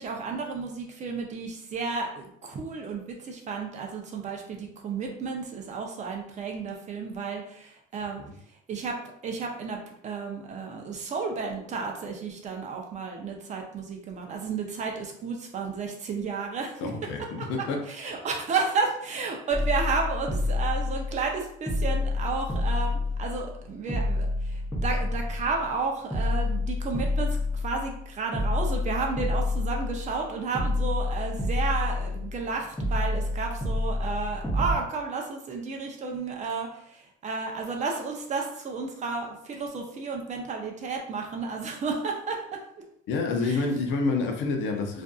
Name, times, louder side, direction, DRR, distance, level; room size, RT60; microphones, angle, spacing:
voice 1, 0.0-8.2 8.7-9.0 9.2-16.9 17.4-17.5 17.9-42.6 43.4-43.6, right 4 dB, 35° right, 2 dB, 0.5 m, -32 dB
voice 2, 16.8-17.9 43.1-45.0, left 3 dB, 65° left, 3 dB, 0.5 m, -28 dB
sound 1, 19.5-21.4 21.7-23.6 23.9-25.7 26.1-28.0 28.3-30.2 30.5-32.5 32.8-34.7, left 2 dB, 5° left, 0.7 m, -28 dB
2.5 x 2.5 x 2.3 m, 0.69 s
cardioid pair, 120°, 21 cm